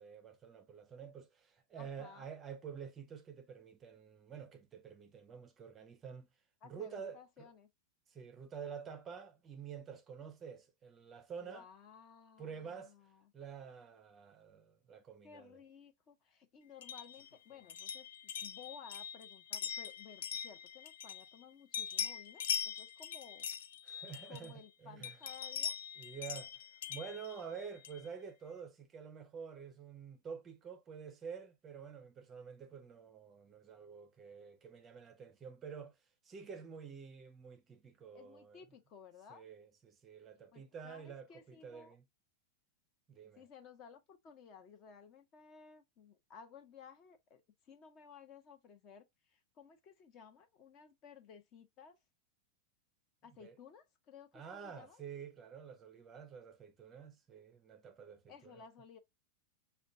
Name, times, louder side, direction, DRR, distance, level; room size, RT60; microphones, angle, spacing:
voice 1, 0.0-6.3 6.6-7.5 8.1-11.7 12.4-12.9 13.3-15.6 23.8-24.5 24.8-25.2 26.0-26.6 26.9-36.0 36.2-38.6 39.3-42.0 43.1-43.4 53.4-53.5 54.3-58.6, right 6 dB, 20° right, 0.5 m, -49 dB
voice 2, 1.8-2.3 6.6-7.7 11.4-13.3 15.2-23.5 24.3-25.8 38.1-39.4 40.5-42.0 43.4-52.0 53.2-55.0 58.3-59.0, left 6 dB, 35° left, 0.9 m, -57 dB
sound 1, 16.8-21.4 21.7-24.7 25.0-28.1, left 8 dB, 85° left, 0.5 m, -42 dB
5.0 x 2.2 x 2.6 m
supercardioid pair, 140°, 0 cm